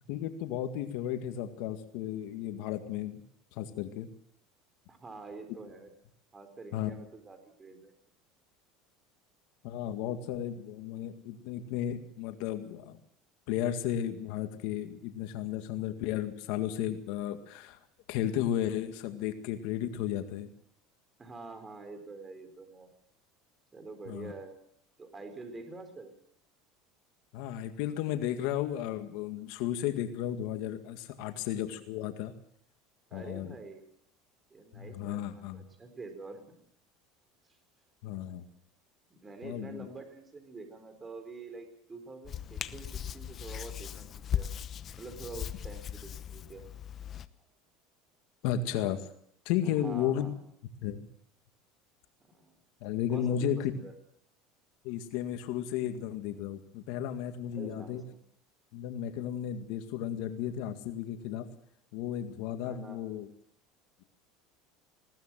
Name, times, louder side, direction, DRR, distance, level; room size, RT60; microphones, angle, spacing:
voice 1, 0.1-3.2 3.5-4.1 6.7-7.0 9.6-13.0 13.5-17.8 18.1-20.5 24.1-24.3 27.3-32.3 33.1-33.6 34.7-35.6 38.0-38.4 39.4-39.9 48.4-49.1 49.5-50.3 50.8-51.1 52.8-53.7 54.8-58.0 58.7-61.5 61.9-63.3, left 10 dB, 70° left, 8 dB, 1.9 m, -34 dB
voice 2, 4.9-5.9 6.3-7.9 21.2-22.9 23.7-24.5 25.0-26.1 31.2-31.3 33.1-33.8 34.5-36.4 39.1-44.5 45.0-46.6 49.6-50.4 52.3-52.6 53.1-53.9 57.5-58.2 62.6-63.0, right 3 dB, 20° right, 7 dB, 4.3 m, -46 dB
Hands, 42.3-47.3, left 9 dB, 35° left, 1.0 m, -38 dB
20.5 x 17.5 x 7.6 m, 0.69 s
supercardioid pair, 130°, 0 cm